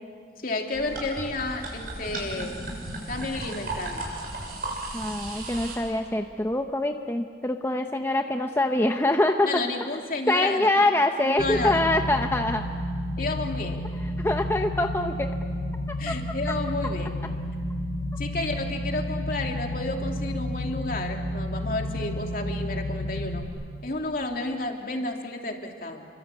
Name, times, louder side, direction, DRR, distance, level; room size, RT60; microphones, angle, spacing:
voice 1, 0.4-2.6 3.1-4.1 9.4-10.7 11.2-11.8 13.2-13.8 16.0-17.2 18.2-23.4 23.8-26.1, left 2 dB, 50° left, 2 dB, 2.9 m, -31 dB
sound 1, 0.7-5.8, right 2 dB, 55° right, 7.3 m, -35 dB
voice 2, 4.9-9.6 10.3-12.6 14.2-15.3 16.1-16.2, left 1 dB, 15° left, 5 dB, 0.8 m, -24 dB
sound 2, 11.4-23.4, left 1 dB, 75° left, 6.3 m, -31 dB
29.5 x 24.0 x 8.4 m, 2.1 s
head